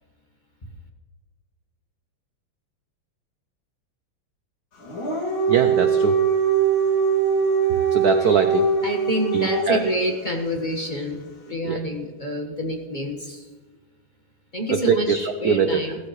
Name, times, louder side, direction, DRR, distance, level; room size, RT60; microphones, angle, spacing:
Dog, 4.8-10.0, right 5 dB, 65° left, 3.2 m, -21 dB
voice 1, 5.5-6.2 7.9-8.7 9.3-9.8 11.6-11.8 14.7-15.2 15.4-15.8, right 7 dB, 70° right, 8 dB, 0.9 m, -22 dB
voice 2, 8.8-11.2 11.5-13.4 14.5-16.0, equal, 25° left, 2 dB, 1.3 m, -27 dB
16.5 x 14.5 x 3.2 m, 1.3 s
omnidirectional pair, 2.4 m